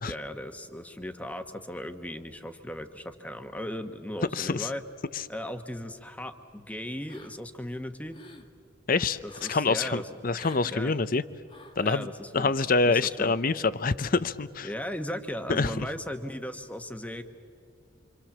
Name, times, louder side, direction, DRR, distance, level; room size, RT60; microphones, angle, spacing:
voice 1, 0.0-4.8 5.3-8.2 9.2-10.1 10.7-10.9 11.8-12.5 12.8-13.3 14.6-17.2, left 1 dB, 5° left, 7 dB, 1.2 m, -37 dB
voice 2, 4.3-4.7 8.9-9.2 9.5-11.2 11.8-12.1 12.3-14.7 15.5-15.9, left 4 dB, 45° left, 15 dB, 0.7 m, -26 dB
sound 1, 7.1-7.6 7.9-8.5 9.3-9.7 10.3-10.8 11.5-11.8, left 2 dB, 30° left, 1.6 m, -49 dB
27.5 x 26.0 x 7.3 m, 2.3 s
head